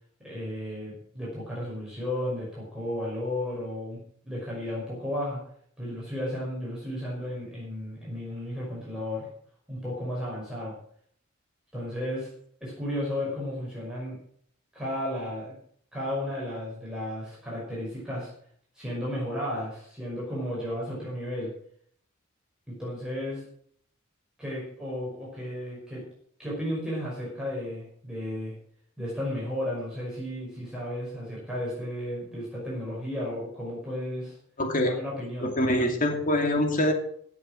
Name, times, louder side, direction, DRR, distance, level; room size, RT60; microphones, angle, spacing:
voice 1, 0.2-4.0 4.2-5.4 5.8-9.3 9.7-10.7 11.7-12.3 12.6-14.2 14.7-15.5 15.9-18.3 18.7-21.5 22.7-23.4 24.4-26.0 26.4-28.5 29.0-34.4 34.8-35.5, left 1 dB, 5° right, -6 dB, 5.6 m, -33 dB
voice 2, 34.6-34.9 35.4-36.9, left 1 dB, 40° left, 4 dB, 2.6 m, -24 dB
16.5 x 7.7 x 6.2 m, 0.62 s
head